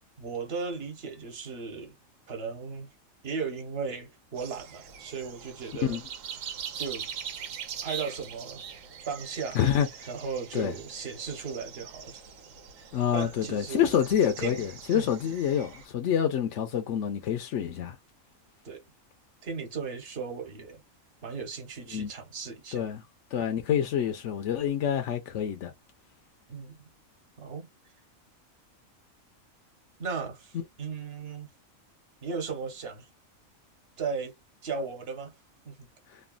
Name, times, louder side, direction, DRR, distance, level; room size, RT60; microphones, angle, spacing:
voice 1, 0.2-2.0 2.3-2.9 3.2-6.0 6.8-7.1 7.8-8.6 9.1-9.6 10.1-12.2 12.8-13.9 14.4-15.1 18.6-18.8 19.4-20.8 21.2-22.8 26.5-26.8 27.4-27.7 30.0-31.5 32.2-33.1 34.0-34.4 34.6-35.3 35.6-35.9, right 5 dB, 50° right, 1.2 m, -36 dB
sound 1, 4.4-15.9, right 7 dB, 75° right, 1.1 m, -42 dB
voice 2, 9.5-9.9 10.5-10.7 12.9-18.0 21.9-22.1 22.7-23.0 23.3-25.7 36.1-36.2, left 9 dB, 65° left, 0.9 m, -27 dB
3.2 x 2.2 x 2.3 m
omnidirectional pair, 1.4 m